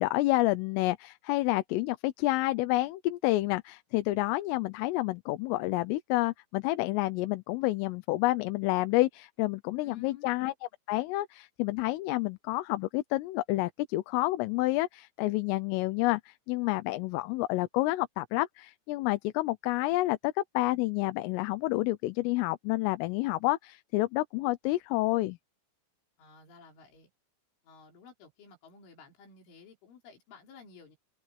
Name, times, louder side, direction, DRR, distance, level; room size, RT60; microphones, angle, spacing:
voice 1, 0.0-10.5 10.9-25.4, left 19 dB, 90° left, 3.5 m, -29 dB
voice 2, 9.8-10.3 26.2-27.1 27.6-31.0, left 5 dB, 70° left, 7.2 m, -53 dB
open air
omnidirectional pair, 5.7 m